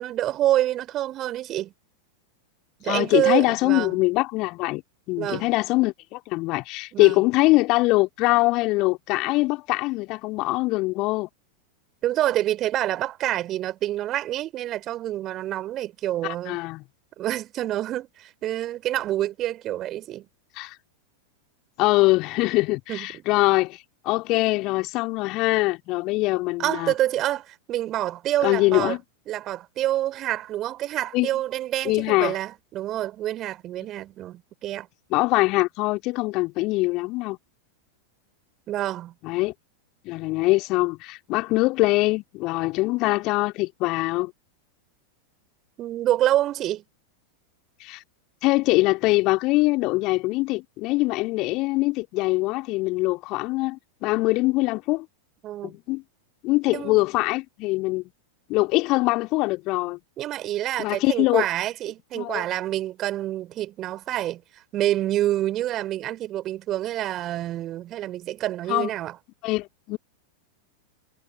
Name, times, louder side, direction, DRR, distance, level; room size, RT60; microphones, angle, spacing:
voice 1, 0.0-1.7 2.8-4.0 5.2-5.5 6.9-7.2 12.0-16.6 17.2-20.3 22.9-23.2 26.6-29.0 29.3-34.9 38.7-39.1 45.8-46.8 55.4-55.7 56.7-57.0 60.2-64.4 64.7-69.2, right 13 dB, 35° right, 3.8 m, -27 dB
voice 2, 2.8-4.8 5.1-11.3 16.2-16.8 20.6-20.8 21.8-26.9 28.4-29.0 31.1-31.3 31.8-32.4 35.1-37.4 39.2-39.5 40.0-44.3 47.8-48.0 48.4-55.1 55.6-56.0 56.4-58.0 58.5-60.0 60.8-61.4 62.2-62.4 68.7-68.9 69.4-70.0, left 22 dB, 40° left, 2.5 m, -23 dB
figure-of-eight pair, 90°, 0 cm